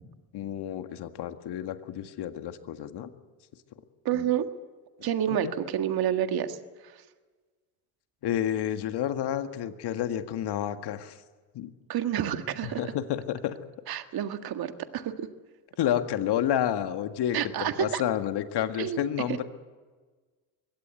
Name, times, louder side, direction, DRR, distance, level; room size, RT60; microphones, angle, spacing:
voice 1, 0.3-3.1 4.1-4.3 5.0-5.5 8.2-11.2 11.5-11.7 12.6-13.6 15.8-19.4, left 10 dB, 55° left, 8 dB, 1.9 m, -30 dB
voice 2, 4.1-4.5 5.0-6.6 11.9-12.8 13.9-15.3 17.3-18.0 18.8-19.0, right 10 dB, 50° right, 8 dB, 1.8 m, -29 dB
23.0 x 17.0 x 8.4 m, 1.4 s
hypercardioid pair, 75°, 48 cm